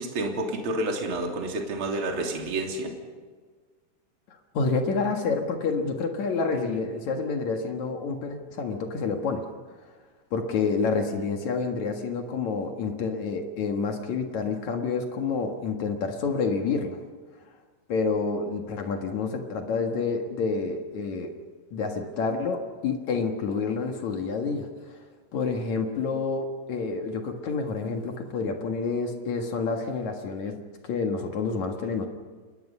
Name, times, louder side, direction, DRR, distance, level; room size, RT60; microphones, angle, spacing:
voice 1, 0.0-2.9 11.1-11.2, right 2 dB, 30° right, 1 dB, 3.0 m, -29 dB
voice 2, 4.5-9.4 10.3-17.0 17.9-21.3 21.7-24.7 25.3-30.6 30.9-32.1, left 4 dB, 65° left, 3 dB, 1.8 m, -28 dB
28.5 x 21.5 x 5.6 m, 1.5 s
omnidirectional pair, 5.9 m